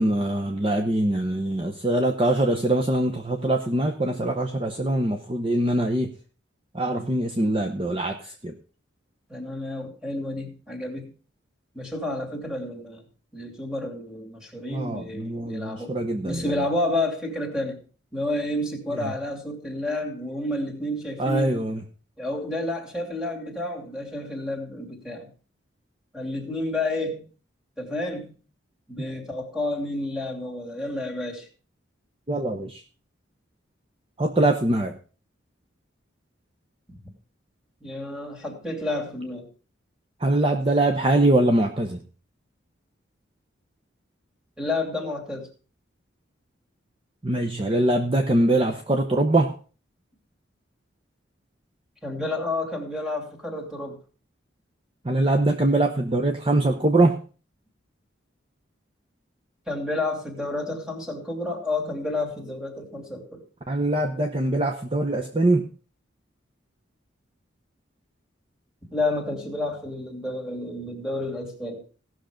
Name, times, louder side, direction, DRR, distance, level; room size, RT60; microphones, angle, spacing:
voice 1, 0.0-6.2 6.7-8.6 14.7-16.6 18.9-19.1 21.2-21.8 32.3-32.8 34.2-35.0 40.2-42.0 47.2-49.6 55.0-57.2 63.7-65.7, right 1 dB, 25° right, 4 dB, 0.8 m, -23 dB
voice 2, 9.3-11.1 11.7-13.0 13.3-15.9 16.2-17.8 18.1-21.6 22.2-25.3 26.1-27.3 27.8-28.4 28.9-31.5 36.9-37.0 37.8-39.5 44.6-45.5 52.0-54.0 59.7-63.4 68.9-71.8, left 2 dB, 5° right, 2 dB, 2.6 m, -30 dB
17.0 x 6.5 x 5.1 m, 0.37 s
head